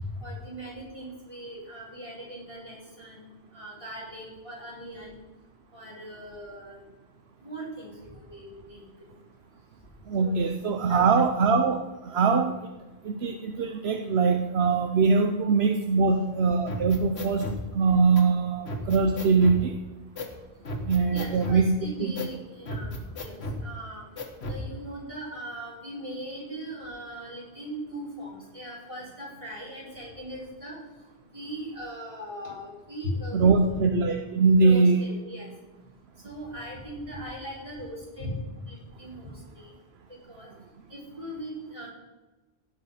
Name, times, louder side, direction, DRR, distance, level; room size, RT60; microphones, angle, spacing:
voice 1, 0.2-5.2 5.7-6.8 7.4-9.1 10.2-11.2 16.0-16.3 21.1-24.0 24.5-30.8 31.3-33.9 34.5-35.5 36.2-38.3 38.7-39.7 40.3-40.5 40.9-41.9, equal, 30° right, -5 dB, 4.6 m, -39 dB
voice 2, 10.1-12.7 13.0-17.5 17.7-19.8 20.8-22.1 33.3-35.0, right 4 dB, 70° right, 4 dB, 1.0 m, -22 dB
sound 1, 16.7-17.6 18.1-18.2 18.7-19.6 20.2-20.3 20.6-21.6 22.1-22.3 22.7-23.6 24.2-24.6, left 1 dB, 75° left, 1.8 m, -34 dB
16.5 x 5.7 x 5.7 m, 1.1 s
omnidirectional pair, 1.1 m